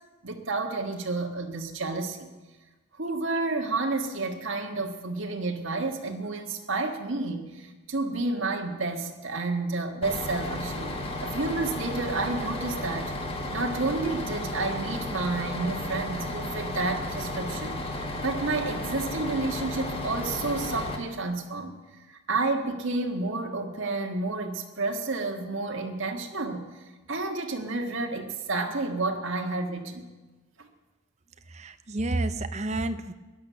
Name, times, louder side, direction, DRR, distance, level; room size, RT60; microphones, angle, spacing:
voice 1, 0.2-2.3 3.0-11.0 11.2-13.1 13.5-17.8 18.2-21.8 22.1-26.8 27.1-30.1 30.6-30.7, right 3 dB, 75° right, 2 dB, 1.7 m, -30 dB
Bus, 10.0-21.0, left 1 dB, 30° left, 1.8 m, -33 dB
voice 2, 31.5-33.1, right 2 dB, 35° right, 10 dB, 0.8 m, -30 dB
17.0 x 11.0 x 6.9 m, 1.2 s
head